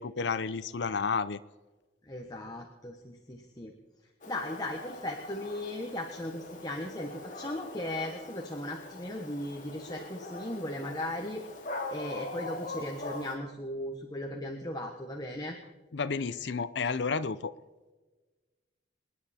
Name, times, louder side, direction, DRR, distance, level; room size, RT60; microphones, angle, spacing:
voice 1, 0.0-1.4 15.9-17.5, left 5 dB, 70° left, 13 dB, 0.6 m, -31 dB
voice 2, 2.0-3.7 4.3-11.4 11.9-15.6, left 1 dB, 20° left, 2 dB, 1.2 m, -37 dB
Dog, 4.2-13.4, left 2 dB, 45° left, 2.3 m, -42 dB
26.5 x 10.0 x 4.3 m, 1.3 s
head